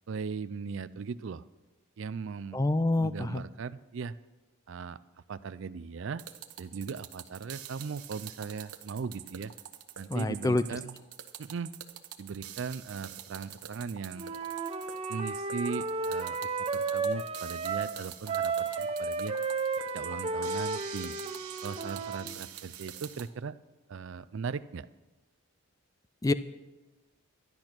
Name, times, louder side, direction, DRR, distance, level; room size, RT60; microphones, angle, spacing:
voice 1, 0.1-1.4 2.0-2.6 3.0-4.1 4.7-5.0 5.3-6.2 6.6-9.5 10.0-11.0 11.4-11.7 12.2-14.3 15.1-19.3 19.9-21.1 21.6-23.6 23.9-24.9, right 5 dB, 55° right, 15 dB, 0.4 m, -38 dB
voice 2, 2.5-3.4 10.1-10.6 26.2-26.3, left 2 dB, 15° left, 13 dB, 0.3 m, -26 dB
sound 1, 6.2-23.3, right 10 dB, 90° right, 1.1 m, -45 dB
Wind instrument woodwind instrument, 14.2-17.9 18.3-22.3, right 4 dB, 25° right, 0.7 m, -33 dB
13.0 x 10.5 x 6.0 m, 1.1 s
head